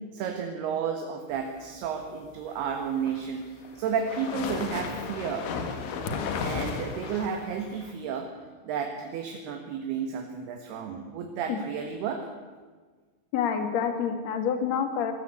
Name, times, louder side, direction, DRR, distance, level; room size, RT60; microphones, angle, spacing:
voice 1, 0.1-5.5 6.4-8.3 8.7-12.3, right 6 dB, 65° right, 4 dB, 3.0 m, -32 dB
sound 1, 2.8-7.9, left 5 dB, 70° left, 4.2 m, -34 dB
voice 2, 13.3-15.1, left 7 dB, 55° left, 7 dB, 2.0 m, -27 dB
23.0 x 14.0 x 8.4 m, 1.4 s
omnidirectional pair, 5.8 m